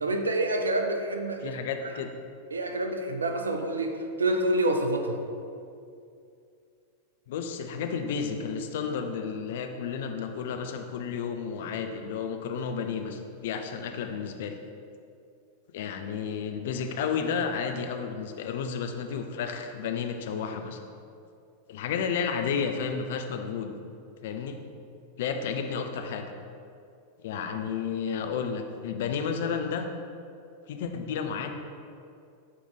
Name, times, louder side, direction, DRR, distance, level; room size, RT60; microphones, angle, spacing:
voice 1, 0.0-1.6 2.5-5.2, right 1 dB, 75° right, 5 dB, 0.5 m, -27 dB
voice 2, 1.4-2.1 7.3-14.5 15.7-20.8 21.7-23.7 24.2-24.6 25.2-26.3 27.2-29.9 30.7-31.5, left 6 dB, 55° left, 6 dB, 0.5 m, -32 dB
8.5 x 3.1 x 3.8 m, 2.5 s
figure-of-eight pair, 90°, 0 cm